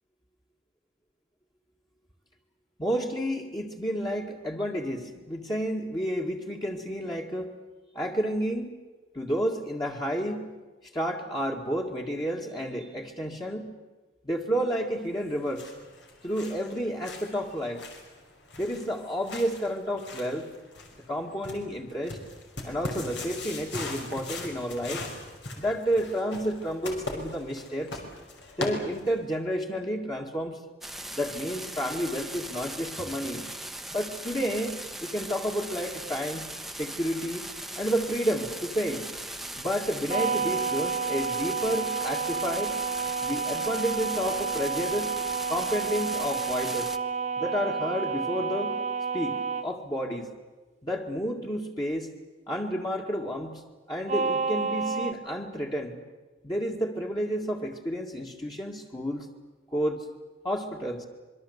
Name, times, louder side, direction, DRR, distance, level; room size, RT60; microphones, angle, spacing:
voice 1, 2.8-7.5 7.9-8.7 9.1-10.5 10.9-13.7 14.2-15.7 16.2-17.8 18.6-20.5 21.1-22.2 22.6-25.1 25.6-28.0 28.6-30.6 31.1-33.4 33.9-36.4 36.7-37.4 37.8-39.1 39.6-42.8 43.2-45.1 45.5-46.9 47.4-48.8 49.1-50.3 50.8-52.1 52.5-53.6 53.9-56.0 56.4-59.3 59.7-60.1 60.4-61.1, equal, 25° left, -1 dB, 2.2 m, -30 dB
sound 1, 15.2-29.3, left 2 dB, 80° left, 5.7 m, -40 dB
sound 2, 30.8-47.0, right 1 dB, ahead, 1.1 m, -39 dB
sound 3, 40.1-49.7 54.1-55.1, right 5 dB, 40° right, 1.4 m, -30 dB
26.5 x 23.0 x 8.2 m, 1.2 s
head